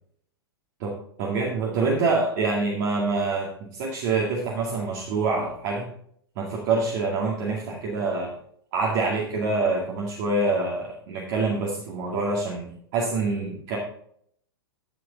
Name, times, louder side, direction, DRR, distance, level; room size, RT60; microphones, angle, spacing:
voice 1, 1.2-5.9 6.4-8.4 8.7-13.8, right 3 dB, 50° right, -3 dB, 2.2 m, -26 dB
14.5 x 5.1 x 3.9 m, 0.65 s
figure-of-eight pair, 105°, 13 cm